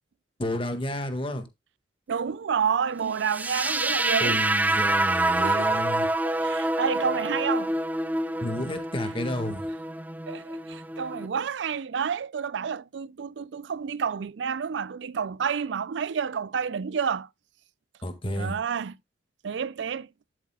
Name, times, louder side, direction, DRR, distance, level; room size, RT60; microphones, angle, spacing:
voice 1, 0.4-1.5 4.2-6.1 8.4-9.7 18.0-18.6, left 1 dB, 30° left, 1.6 m, -31 dB
voice 2, 2.1-4.4 5.3-7.7 10.3-17.3 18.3-19.0 19.4-20.1, right 6 dB, 75° right, 0.4 m, -29 dB
sound 1, 3.2-11.3, right 2 dB, 10° right, 0.4 m, -27 dB
12.0 x 8.0 x 2.3 m
head